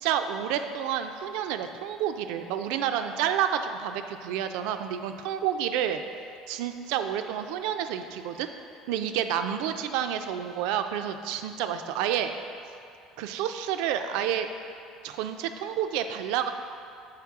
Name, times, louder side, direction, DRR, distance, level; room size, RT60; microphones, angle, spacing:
voice 1, 0.0-6.0 6.5-8.5 8.9-12.3 13.2-14.5 15.0-16.5, right 9 dB, 75° right, 8 dB, 0.3 m, -29 dB
5.9 x 4.5 x 3.6 m, 2.5 s
supercardioid pair, 120°, 0 cm